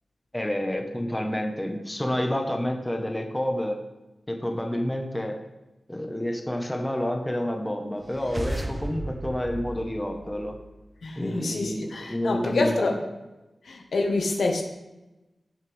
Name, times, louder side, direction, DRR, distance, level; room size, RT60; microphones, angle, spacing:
voice 1, 0.3-3.8 4.3-5.3 5.9-10.6 11.2-12.9, left 1 dB, 10° left, 3 dB, 1.3 m, -29 dB
sound 1, 8.0-10.8, right 1 dB, 25° right, 0.8 m, -35 dB
voice 2, 11.0-13.0 13.6-14.6, left 3 dB, 80° left, 2 dB, 1.5 m, -27 dB
17.0 x 6.5 x 3.6 m, 1.0 s
wide cardioid pair, 100°, 0 cm